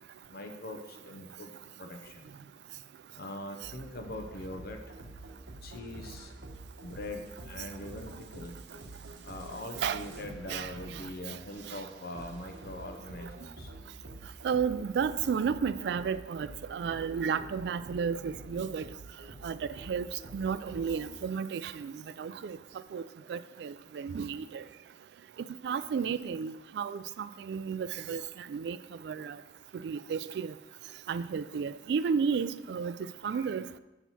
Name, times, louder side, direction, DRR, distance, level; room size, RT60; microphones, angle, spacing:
voice 1, 0.3-1.5 1.8-2.3 3.2-5.1 5.6-6.3 6.8-8.5 9.2-13.7, left 1 dB, 60° left, 4 dB, 0.7 m, -42 dB
sound 1, 3.6-21.2, right 2 dB, 85° right, 0.9 m, -48 dB
voice 2, 14.4-18.8 19.4-20.1 20.3-21.9 22.2-22.6 22.9-23.0 23.3-24.6 25.6-28.2 28.5-28.8 29.0-29.4 29.8-30.5 31.1-32.9 33.2-33.7, right 6 dB, 65° right, 14 dB, 0.3 m, -32 dB
7.3 x 5.9 x 4.1 m, 1.0 s
head